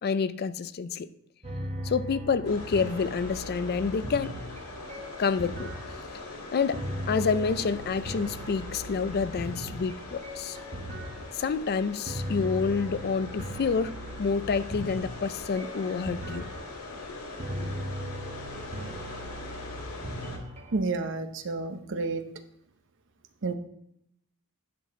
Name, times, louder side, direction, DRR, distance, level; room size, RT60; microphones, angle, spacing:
voice 1, 0.0-1.1 1.8-4.3 5.2-5.7 6.5-6.8 7.1-10.6 11.3-16.5, left 5 dB, 45° left, 14 dB, 0.4 m, -28 dB
sound 1, 1.4-20.8, equal, 30° right, 1.5 m, -39 dB
sound 2, 2.4-20.4, left 3 dB, 80° left, 2.1 m, -42 dB
voice 2, 20.7-22.2 23.4-23.5, right 3 dB, 55° right, 9 dB, 0.8 m, -30 dB
10.5 x 6.1 x 3.6 m, 0.76 s
head